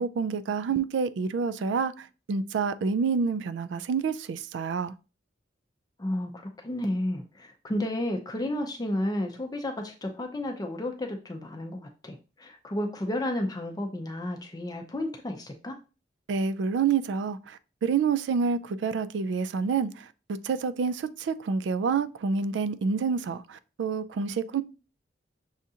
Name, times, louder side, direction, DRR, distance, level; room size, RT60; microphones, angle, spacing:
voice 1, 0.0-4.9 16.3-24.6, right 5 dB, 70° right, 0.3 m, -28 dB
voice 2, 6.0-15.8, left 1 dB, 20° left, 0.5 m, -32 dB
6.3 x 2.4 x 2.7 m
head